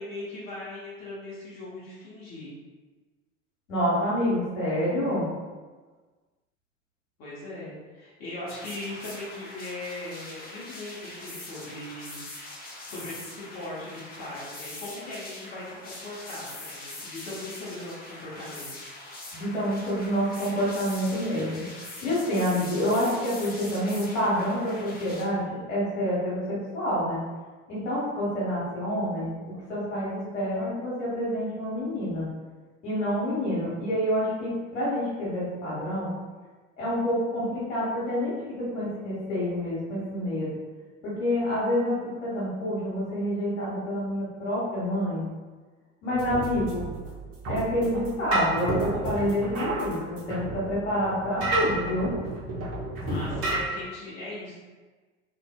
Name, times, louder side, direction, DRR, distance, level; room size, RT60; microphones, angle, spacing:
voice 1, 0.0-2.5 7.2-12.2 12.8-18.7 53.1-54.6, left 2 dB, 40° left, -8 dB, 1.1 m, -39 dB
voice 2, 3.7-5.2 19.3-21.5 22.0-27.2 27.7-29.3 29.7-32.3 32.8-36.1 36.8-40.5 41.0-45.3 46.0-46.8 47.5-52.1, equal, 70° left, -8 dB, 1.3 m, -28 dB
sound 1, 8.5-25.2, left 2 dB, 25° left, 0.8 m, -42 dB
sound 2, 46.1-53.6, right 2 dB, 35° right, 0.8 m, -31 dB
2.7 x 2.5 x 2.3 m, 1.3 s
figure-of-eight pair, 75°, 39 cm